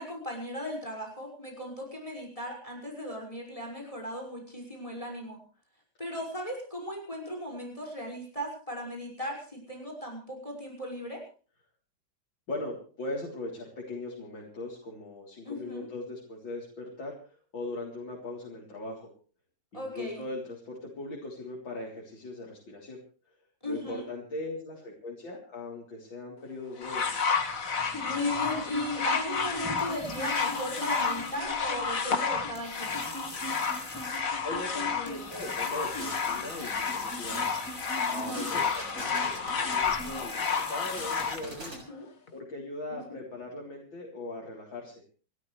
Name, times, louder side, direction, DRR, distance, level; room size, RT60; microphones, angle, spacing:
voice 1, 0.0-5.4 6.0-11.2 15.4-15.9 19.7-20.2 23.6-24.0 28.0-33.0 38.3-38.7 41.7-42.1 42.9-43.2, left 1 dB, 15° left, 2 dB, 5.9 m, -37 dB
voice 2, 12.5-19.1 19.7-23.0 23.7-27.1 34.4-37.6 38.1-41.8 42.3-45.0, left 2 dB, 70° left, -2 dB, 4.4 m, -39 dB
sound 1, 26.8-41.4 42.3-42.4, left 5 dB, 45° left, 2.2 m, -31 dB
sound 2, 26.8-41.6, equal, 5° right, 7.8 m, -47 dB
sound 3, 35.8-36.3 38.2-39.8 41.0-41.8, right 1 dB, 45° right, 7.9 m, -43 dB
30.0 x 13.5 x 3.3 m, 0.38 s
omnidirectional pair, 2.2 m